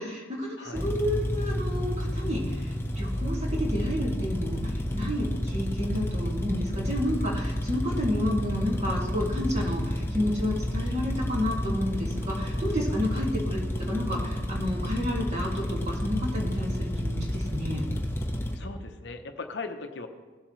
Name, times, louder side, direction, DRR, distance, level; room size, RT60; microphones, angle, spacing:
voice 1, 0.0-17.8, left 1 dB, 35° right, -2 dB, 2.1 m, -31 dB
voice 2, 0.6-0.9 13.1-13.3 18.5-20.1, left 3 dB, 60° left, 6 dB, 0.8 m, -39 dB
sound 1, 0.8-18.6, equal, 10° left, 0.8 m, -30 dB
17.5 x 7.5 x 3.2 m, 1.3 s
head